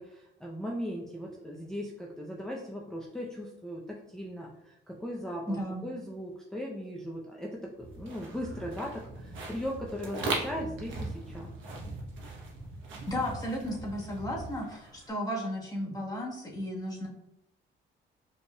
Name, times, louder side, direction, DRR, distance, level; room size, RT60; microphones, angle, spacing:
voice 1, 0.0-11.5, equal, 5° left, -2 dB, 0.5 m, -38 dB
voice 2, 5.5-5.8 13.1-17.1, equal, 20° left, -2 dB, 1.2 m, -34 dB
sound 1, 7.8-15.1, right 3 dB, 75° right, 1.0 m, -39 dB
5.2 x 3.4 x 2.2 m, 0.85 s
cardioid pair, 90°, 20 cm